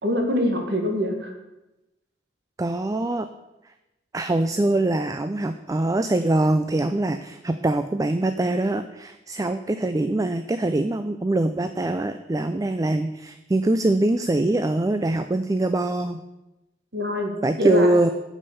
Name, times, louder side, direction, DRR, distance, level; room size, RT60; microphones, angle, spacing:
voice 1, 0.0-1.3 16.9-17.3 17.6-18.0, left 1 dB, 65° right, 3 dB, 2.0 m, -24 dB
voice 2, 2.6-3.3 4.1-16.2 17.4-18.1, right 2 dB, 20° right, 10 dB, 0.4 m, -23 dB
8.4 x 7.4 x 6.9 m, 0.98 s
head